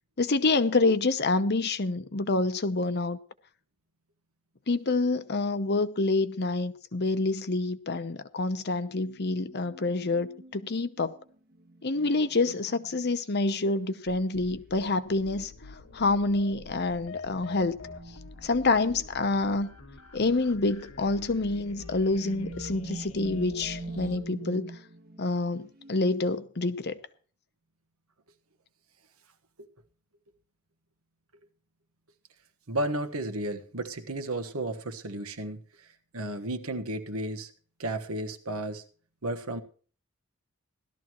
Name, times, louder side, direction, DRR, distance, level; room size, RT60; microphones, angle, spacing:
voice 1, 0.2-3.2 4.7-11.1 11.8-15.5 15.9-17.8 18.4-19.7 20.1-24.7 25.2-27.0, left 3 dB, 50° left, 0.9 m, -27 dB
sound 1, 8.9-13.2 14.3-14.5 15.5-16.0 16.5-16.9 17.3-18.9 19.2-20.1 20.8-20.9 21.2-26.2, right 2 dB, 45° right, 1.5 m, -45 dB
sound 2, 14.1-24.2, left 3 dB, 80° left, 1.5 m, -47 dB
voice 2, 32.7-35.6 36.1-37.5 37.8-38.8 39.2-39.6, right 1 dB, 80° right, 1.4 m, -33 dB
17.0 x 13.0 x 3.1 m
head